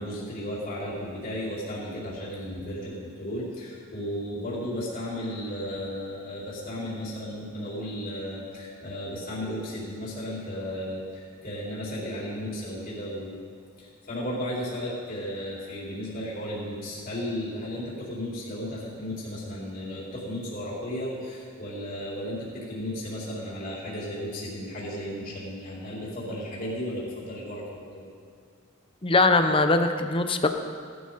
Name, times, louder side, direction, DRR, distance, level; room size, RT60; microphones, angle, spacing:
voice 1, 0.0-13.4 13.8-28.1, equal, 40° left, -7 dB, 4.4 m, -34 dB
voice 2, 29.0-30.6, left 3 dB, 25° left, 7 dB, 0.7 m, -21 dB
19.0 x 12.5 x 4.0 m, 2.1 s
head